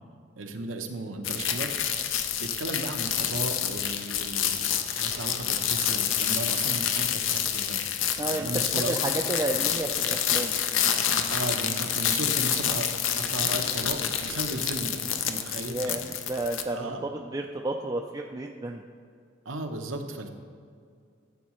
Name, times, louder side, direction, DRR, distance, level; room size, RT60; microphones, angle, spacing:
voice 1, 0.4-1.8 2.4-9.1 11.3-12.9 13.2-16.1 16.7-17.0 19.4-20.3, right 2 dB, 85° right, 4 dB, 0.9 m, -35 dB
sound 1, 1.2-16.6, left 9 dB, 80° left, 0.6 m, -28 dB
voice 2, 8.2-10.6 15.7-18.8, right 2 dB, 20° right, 1 dB, 0.3 m, -32 dB
13.5 x 7.2 x 3.1 m, 2.2 s
head